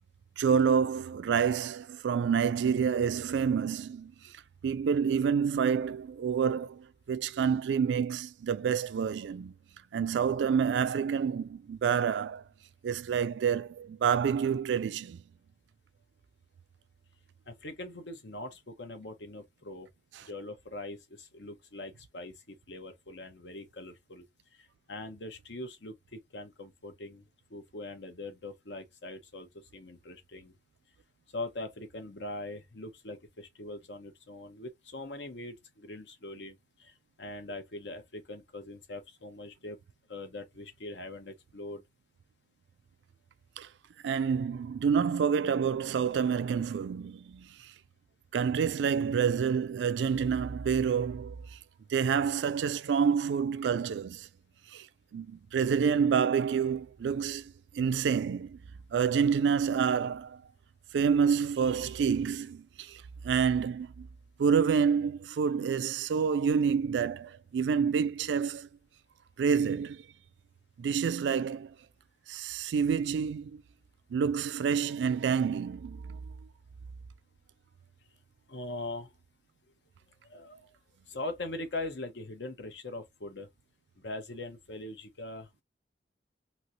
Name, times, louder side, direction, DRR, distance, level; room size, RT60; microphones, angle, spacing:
voice 1, 0.4-4.1 4.6-9.5 9.9-12.4 12.8-15.2 43.6-43.7 44.0-47.5 48.3-51.6 51.9-54.3 54.7-54.9 55.1-58.6 58.9-60.4 60.9-64.1 64.4-68.7 69.4-70.0 70.8-71.7 72.3-73.6 74.1-76.2, right 6 dB, 80° right, 0.3 m, -28 dB
voice 2, 17.5-19.9 20.2-24.2 24.9-30.5 31.3-36.9 37.2-39.8 40.1-41.8 78.5-79.1 80.3-80.7 81.1-83.5 84.0-85.5, left 2 dB, 80° left, 1.0 m, -42 dB
3.1 x 2.8 x 2.6 m
head